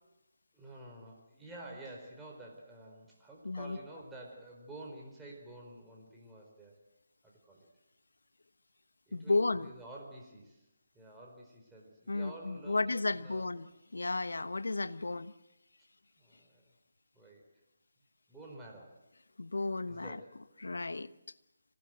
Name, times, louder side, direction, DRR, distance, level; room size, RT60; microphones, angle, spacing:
voice 1, 0.5-6.8 7.2-7.7 9.1-10.7 10.9-13.5 16.2-16.7 17.1-17.5 18.3-19.0 19.9-20.3, right 1 dB, 5° right, -2 dB, 4.8 m, -50 dB
voice 2, 3.4-3.8 9.1-9.7 12.1-15.3 19.4-20.2 20.6-21.1, left 3 dB, 85° left, 14 dB, 1.1 m, -33 dB
25.5 x 17.5 x 7.9 m, 0.91 s
figure-of-eight pair, 160°, 0 cm